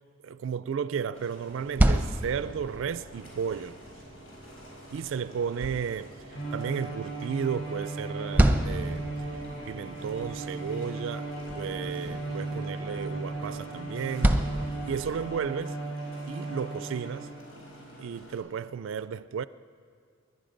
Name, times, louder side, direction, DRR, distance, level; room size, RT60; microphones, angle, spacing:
voice 1, 0.2-3.8 4.9-9.4 9.7-14.4 14.9-15.8 16.3-17.3 18.0-19.4, right 7 dB, 65° right, 0.3 m, -33 dB
sound 1, 1.1-18.4, equal, 80° left, 4.6 m, -48 dB
sound 2, 1.5-15.5, right 1 dB, 10° right, 0.7 m, -31 dB
Bowed string instrument, 6.3-17.5, right 2 dB, 50° left, 4.6 m, -36 dB
21.0 x 11.0 x 5.2 m
head